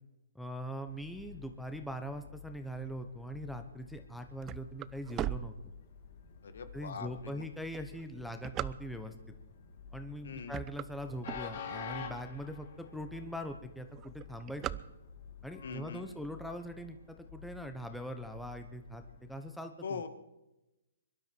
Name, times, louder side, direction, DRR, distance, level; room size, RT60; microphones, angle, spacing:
voice 1, 0.3-5.5 6.7-9.1 9.9-14.8 15.4-20.0, equal, ahead, 6 dB, 1.1 m, -42 dB
Train, 0.8-19.4, left 6 dB, 55° left, 2.5 m, -50 dB
sound 1, 4.0-6.2 6.8-6.9 7.6-9.3 9.9-10.1 10.4-12.0 12.5-12.6 12.8-12.9 13.2-13.5 13.8-15.4, right 13 dB, 20° right, 0.4 m, -39 dB
voice 2, 6.4-7.4 10.2-10.6 15.6-16.1 19.8-20.1, left 6 dB, 70° left, 10 dB, 1.7 m, -42 dB
23.0 x 12.0 x 4.6 m, 0.96 s
hypercardioid pair, 150°, 0 cm